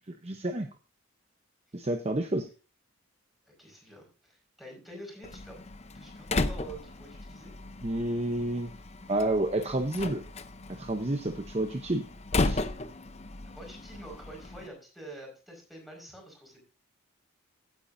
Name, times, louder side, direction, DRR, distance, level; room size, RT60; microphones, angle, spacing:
voice 1, 0.1-0.7 1.7-2.5 7.8-8.7 9.1-10.2 10.7-12.1 12.4-12.6, right 1 dB, 30° right, 6 dB, 0.8 m, -30 dB
voice 2, 3.5-5.6 5.9-7.5 13.5-16.6, right 1 dB, ahead, 0 dB, 5.1 m, -47 dB
Slam, 5.2-14.7, left 2 dB, 30° left, 0.7 m, -35 dB
16.0 x 9.2 x 2.7 m, 0.33 s
head